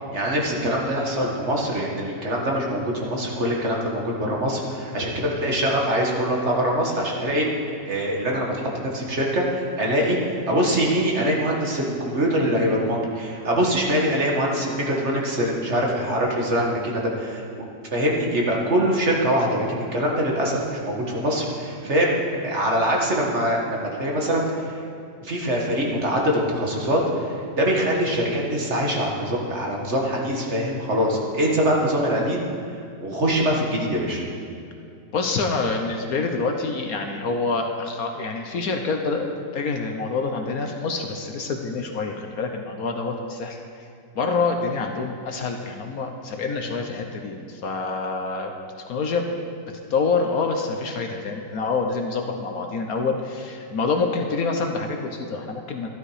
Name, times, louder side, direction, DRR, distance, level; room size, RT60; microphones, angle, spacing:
voice 1, 0.1-24.7 25.2-32.4 33.0-34.2, equal, 40° right, -2 dB, 1.7 m, -23 dB
voice 2, 35.1-43.6 44.1-48.5 48.9-49.3 49.9-55.9, left 4 dB, 60° left, 3 dB, 1.2 m, -26 dB
12.5 x 12.0 x 4.9 m, 2.4 s
omnidirectional pair, 1.9 m